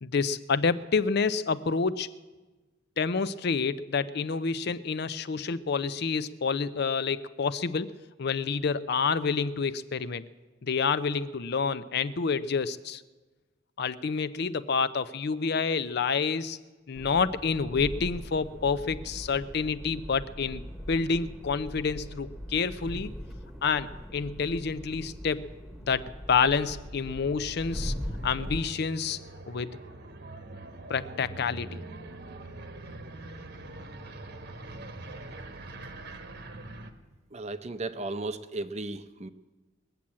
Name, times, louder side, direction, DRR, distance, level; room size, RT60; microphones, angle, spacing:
voice 1, 0.0-2.1 3.0-7.9 8.2-10.2 10.6-13.0 13.8-16.6 16.9-23.1 23.6-25.5 25.9-27.9 28.2-29.2 29.5-29.8 30.9-31.8, left 5 dB, 55° left, 15 dB, 0.5 m, -28 dB
sound 1, 17.0-28.6, equal, ahead, 1.2 m, -40 dB
sound 2, 26.8-36.9, right 2 dB, 55° right, 1.2 m, -44 dB
voice 2, 37.3-39.3, right 2 dB, 35° right, 11 dB, 0.7 m, -35 dB
21.0 x 7.5 x 8.5 m, 1.2 s
head